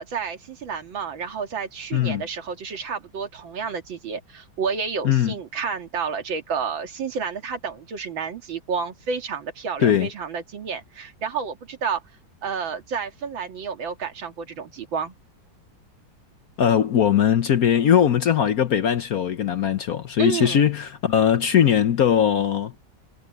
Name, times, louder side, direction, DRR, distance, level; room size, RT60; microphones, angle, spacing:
voice 1, 0.0-12.0 12.4-15.1 20.2-20.6, right 6 dB, 75° right, 2.7 m, -30 dB
voice 2, 1.9-2.2 5.0-5.3 9.8-10.1 16.6-22.7, left 9 dB, 60° left, 1.1 m, -20 dB
omnidirectional pair, 2.1 m